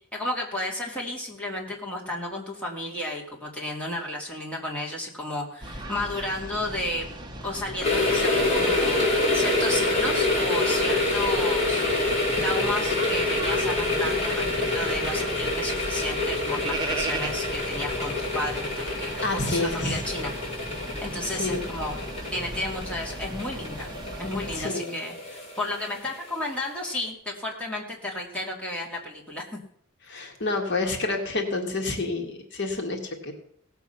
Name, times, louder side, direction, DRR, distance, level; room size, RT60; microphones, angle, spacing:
voice 1, 0.1-7.1 7.4-9.0 9.3-11.8 12.4-22.0 22.3-23.9 24.2-29.6, left 1 dB, 5° left, -3 dB, 2.2 m, -33 dB
sound 1, 5.6-24.6, right 1 dB, 20° right, 1.0 m, -37 dB
sound 2, 7.8-26.5 26.8-26.9, left 2 dB, 30° left, 4.2 m, -27 dB
voice 2, 19.2-20.0 21.3-21.7 24.5-25.0 30.1-33.3, left 2 dB, 55° left, 3 dB, 1.8 m, -28 dB
17.0 x 7.2 x 5.7 m, 0.65 s
head